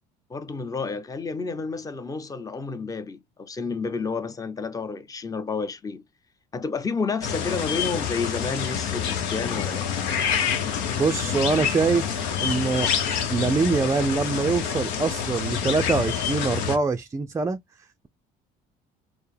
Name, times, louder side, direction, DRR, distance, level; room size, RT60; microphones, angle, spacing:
voice 1, 0.3-6.0 6.5-9.9, left 4 dB, 20° left, 0.6 m, -30 dB
sound 1, 7.2-16.8, left 8 dB, 85° left, 0.8 m, -27 dB
voice 2, 11.0-12.9 13.3-17.6, right 4 dB, 15° right, 0.4 m, -24 dB
4.4 x 2.0 x 3.4 m
supercardioid pair, 95°, 18 cm